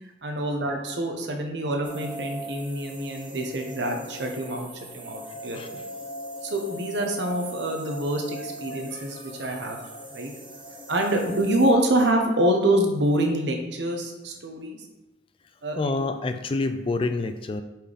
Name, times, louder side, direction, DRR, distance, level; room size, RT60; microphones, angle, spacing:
voice 1, 0.2-4.7 4.9-5.8 6.4-9.8 10.1-10.3 10.9-14.8 15.6-16.0, right 1 dB, 65° right, 3 dB, 1.0 m, -26 dB
sound 1, 1.8-11.7, equal, 25° right, 1.1 m, -40 dB
voice 2, 15.8-17.6, left 3 dB, 30° left, 9 dB, 0.3 m, -27 dB
5.4 x 4.4 x 5.0 m, 1.0 s
head